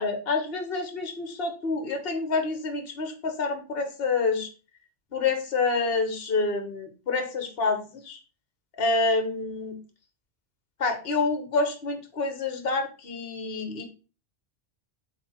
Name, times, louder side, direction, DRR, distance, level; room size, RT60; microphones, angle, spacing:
voice 1, 0.0-4.5 5.1-8.2 8.8-9.7 10.8-13.8, left 3 dB, 55° left, 6 dB, 1.3 m, -27 dB
7.6 x 3.4 x 4.3 m, 0.34 s
omnidirectional pair, 1.2 m